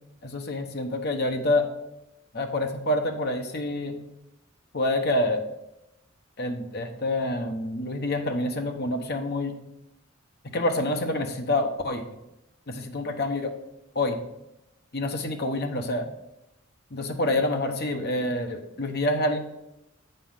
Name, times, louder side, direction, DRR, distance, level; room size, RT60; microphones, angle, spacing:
voice 1, 0.2-1.7 2.3-4.0 4.7-5.4 6.4-9.6 10.4-12.0 12.7-13.5 13.9-14.2 14.9-16.1 16.9-19.4, left 1 dB, 50° left, 5 dB, 1.0 m, -27 dB
8.4 x 5.5 x 5.6 m, 0.90 s
head